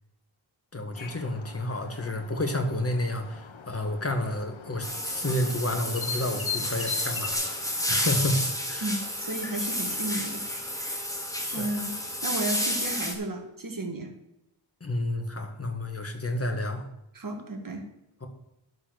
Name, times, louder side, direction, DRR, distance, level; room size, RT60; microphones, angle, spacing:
voice 1, 0.7-7.5 7.9-8.9 11.5-11.8 14.8-16.9 18.2-18.3, left 1 dB, 30° left, 4 dB, 1.9 m, -30 dB
sound 1, 0.9-7.3, left 6 dB, 70° left, 1.1 m, -40 dB
sound 2, 4.8-13.1, left 1 dB, 5° left, 2.1 m, -31 dB
voice 2, 8.8-10.5 11.5-11.9 12.2-14.1 17.1-17.9, right 2 dB, 40° right, 3 dB, 1.9 m, -33 dB
11.0 x 6.2 x 6.5 m, 0.86 s
wide cardioid pair, 80°, 48 cm